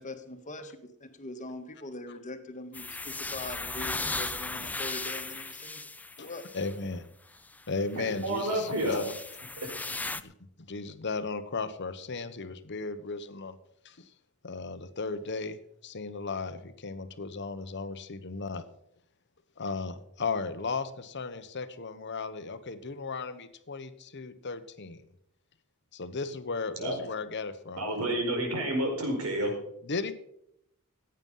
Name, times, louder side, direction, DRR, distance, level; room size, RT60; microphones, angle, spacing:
voice 1, 0.0-5.8 6.2-6.4, left 2 dB, 35° left, 7 dB, 1.5 m, -42 dB
sound 1, 2.7-6.8 7.4-7.5 8.1-10.2, left 3 dB, 5° left, 0.4 m, -37 dB
voice 2, 6.2-7.1 7.7-9.1 10.2-10.3 10.6-13.6 13.8-14.1 14.4-18.6 19.6-25.1 25.9-27.8 29.8-30.3, left 4 dB, 50° left, 11 dB, 1.0 m, -36 dB
voice 3, 7.9-9.0 26.8-26.9 27.8-29.5, right 1 dB, 80° right, 2 dB, 4.7 m, -30 dB
15.0 x 9.0 x 5.6 m, 0.77 s
head